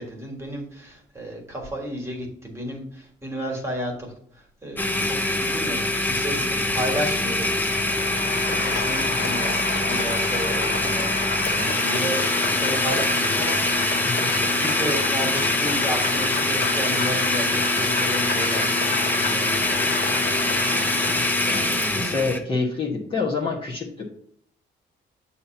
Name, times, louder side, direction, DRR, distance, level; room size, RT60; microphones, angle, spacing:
voice 1, 0.0-9.6 9.9-11.2 11.6-19.9, right 1 dB, 15° right, 1 dB, 1.7 m, -33 dB
Domestic sounds home sounds, 4.8-22.4, left 2 dB, 10° left, 0.7 m, -24 dB
Applause, 7.1-22.0, left 4 dB, 65° left, 1.5 m, -31 dB
voice 2, 21.4-24.1, left 4 dB, 25° left, -2 dB, 1.0 m, -27 dB
8.3 x 2.9 x 5.8 m, 0.64 s
cardioid pair, 165°, 19 cm